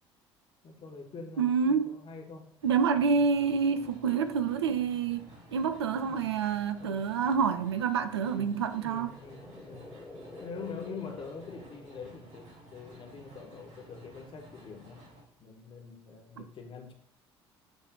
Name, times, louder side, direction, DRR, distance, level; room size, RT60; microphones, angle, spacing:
voice 1, 0.6-2.6 6.0-6.3 6.8-7.0 8.2-9.9 10.4-15.0 15.4-16.9, left 4 dB, 40° left, 1.4 m, -45 dB
voice 2, 1.4-1.9 2.6-9.1, right 6 dB, 75° right, 0.5 m, -28 dB
sound 1, 2.6-15.2, equal, 55° right, 2.8 m, -53 dB
sound 2, 8.6-12.7, left 2 dB, 10° left, 1.0 m, -50 dB
8.3 x 3.3 x 4.5 m
figure-of-eight pair, 55°, 14 cm